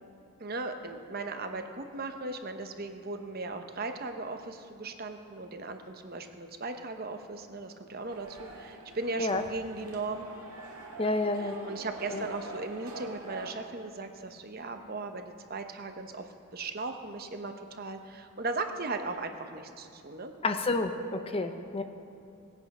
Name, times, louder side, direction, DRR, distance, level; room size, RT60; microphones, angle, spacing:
voice 1, 0.4-10.3 11.3-20.3, right 3 dB, 45° right, 6 dB, 0.8 m, -37 dB
sound 1, 8.1-13.5, right 2 dB, 80° right, 2.0 m, -44 dB
voice 2, 11.0-11.7 12.1-12.2 20.4-21.8, left 2 dB, 25° left, 7 dB, 0.5 m, -30 dB
18.5 x 8.9 x 5.4 m, 2.7 s
head